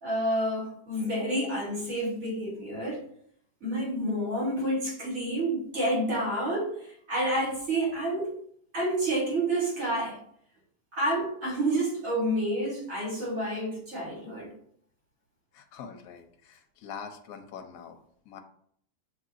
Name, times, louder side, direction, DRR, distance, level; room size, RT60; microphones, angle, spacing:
voice 1, 0.0-3.0 3.6-8.3 8.7-10.2 10.9-14.5, right 1 dB, 55° right, -3 dB, 1.8 m, -29 dB
voice 2, 15.5-18.0 18.3-18.4, left 7 dB, 70° left, 6 dB, 1.0 m, -44 dB
6.5 x 2.7 x 2.4 m, 0.64 s
omnidirectional pair, 1.8 m